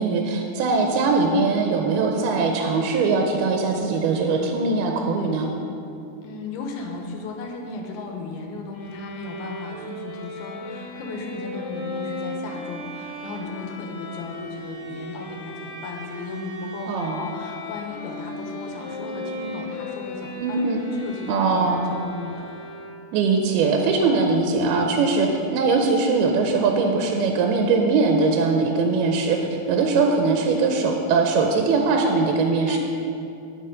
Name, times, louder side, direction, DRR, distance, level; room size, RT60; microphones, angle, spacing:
voice 1, 0.0-5.5 16.9-17.3 20.4-20.8 21.3-21.8 23.1-29.4 29.7-32.8, right 4 dB, 80° right, 2 dB, 2.5 m, -21 dB
voice 2, 6.2-22.5 32.7-32.8, left 3 dB, 75° left, 1 dB, 2.8 m, -35 dB
Bowed string instrument, 8.7-23.3, left 1 dB, 50° left, 1.8 m, -36 dB
11.0 x 6.3 x 5.0 m, 2.7 s
omnidirectional pair, 4.7 m